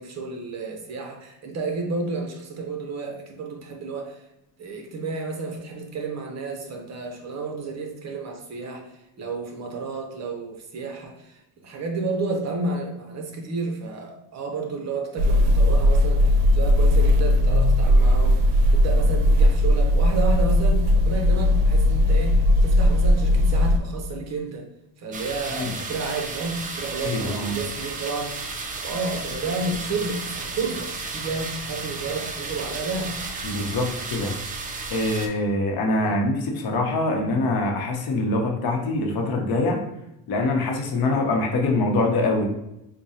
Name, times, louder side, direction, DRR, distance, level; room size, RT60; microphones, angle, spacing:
voice 1, 0.0-4.2 4.6-24.7 25.0-28.3 28.8-33.1 36.0-36.2, right 3 dB, 40° right, 2 dB, 0.7 m, -31 dB
sound 1, 15.2-23.8, left 1 dB, 90° right, 0.5 m, -18 dB
sound 2, 25.1-35.3, right 3 dB, 20° right, 0.3 m, -33 dB
voice 2, 27.0-27.6 33.4-34.3 34.9-39.8 40.3-42.5, left 2 dB, 55° left, 2 dB, 0.8 m, -24 dB
4.8 x 2.2 x 2.7 m, 0.86 s
cardioid pair, 120°, 42 cm